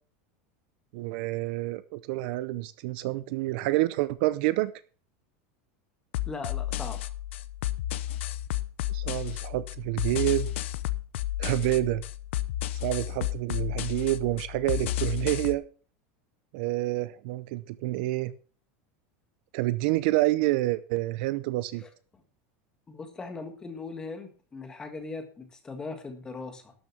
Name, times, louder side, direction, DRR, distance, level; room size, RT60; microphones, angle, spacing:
voice 1, 0.9-4.7 8.9-10.5 11.4-12.0 12.8-15.6 16.5-18.3 19.5-21.8, right 18 dB, 55° right, 16 dB, 0.6 m, -28 dB
sound 1, 6.1-15.5, left 14 dB, 85° left, 0.8 m, -32 dB
voice 2, 6.3-7.0 22.9-26.7, left 3 dB, 10° left, 6 dB, 1.6 m, -39 dB
12.5 x 6.5 x 6.0 m, 0.40 s
supercardioid pair, 175°, 6 cm